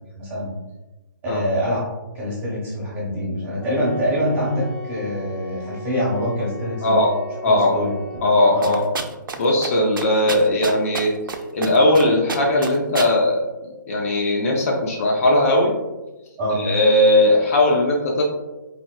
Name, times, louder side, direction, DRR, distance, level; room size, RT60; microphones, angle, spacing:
voice 1, 0.1-0.5 1.2-1.8 2.1-7.0 7.7-7.9 8.5-8.7 16.4-16.6, equal, 15° right, -6 dB, 1.1 m, -24 dB
Wind instrument woodwind instrument, 3.6-8.5, left 2 dB, 10° left, 0.9 m, -38 dB
voice 2, 6.8-7.1 7.4-7.8 8.2-8.8 9.4-11.1 11.5-13.4 13.9-15.7 16.5-18.2, left 1 dB, 45° left, -1 dB, 0.5 m, -18 dB
sound 1, 8.6-9.4 9.6-9.7 10.0-11.4 11.6-12.0 12.3-13.1, right 5 dB, 90° right, 0.4 m, -28 dB
4.1 x 2.1 x 2.2 m, 1.1 s
hypercardioid pair, 150°, 11 cm